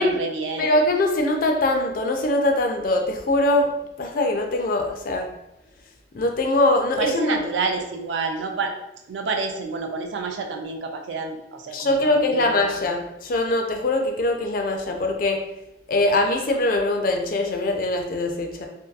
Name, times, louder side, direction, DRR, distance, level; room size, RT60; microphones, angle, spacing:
voice 1, 0.0-0.7 7.0-8.7 9.1-12.8, right 4 dB, 80° right, 4 dB, 0.4 m, -28 dB
voice 2, 0.6-3.7 4.0-5.3 6.1-7.4 11.7-15.4 15.9-18.7, left 2 dB, 50° left, 4 dB, 0.3 m, -22 dB
2.6 x 2.2 x 2.3 m, 0.87 s
head